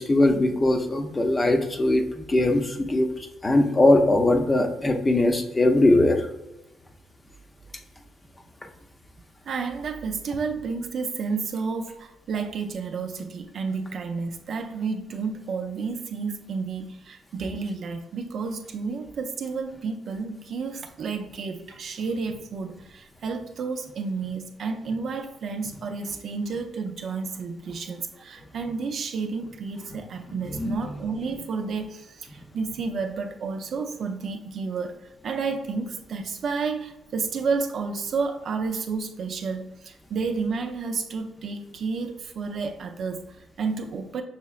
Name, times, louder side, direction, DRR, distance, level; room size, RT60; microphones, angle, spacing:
voice 1, 0.0-3.1 3.4-6.2 30.5-30.8, left 2 dB, 20° left, 4 dB, 0.6 m, -20 dB
voice 2, 9.5-44.2, right 4 dB, 60° right, 5 dB, 0.5 m, -31 dB
5.6 x 3.0 x 2.4 m, 0.95 s
cardioid pair, 90°, 0 cm